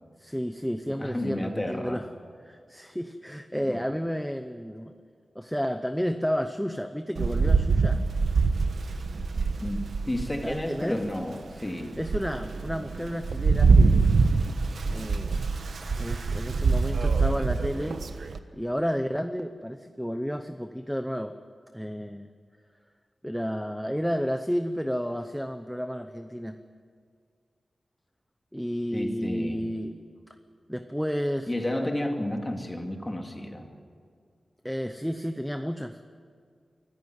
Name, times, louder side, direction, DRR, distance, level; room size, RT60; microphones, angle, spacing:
voice 1, 0.2-2.1 2.4-4.9 5.3-8.0 10.4-11.0 12.0-14.1 14.9-15.4 16.0-18.0 18.5-21.3 21.7-22.3 23.2-26.6 28.5-30.0 30.7-31.5 34.6-36.0, equal, ahead, 8 dB, 0.7 m, -31 dB
voice 2, 0.9-2.0 3.7-3.8 9.6-12.0 28.9-29.7 31.5-33.7, left 1 dB, 15° left, 3 dB, 2.3 m, -32 dB
Rain, 7.1-10.7 11.2-11.3 11.8-18.4, right 4 dB, 85° right, 1.2 m, -24 dB
24.5 x 14.5 x 9.3 m, 2.1 s
wide cardioid pair, 120°, 0 cm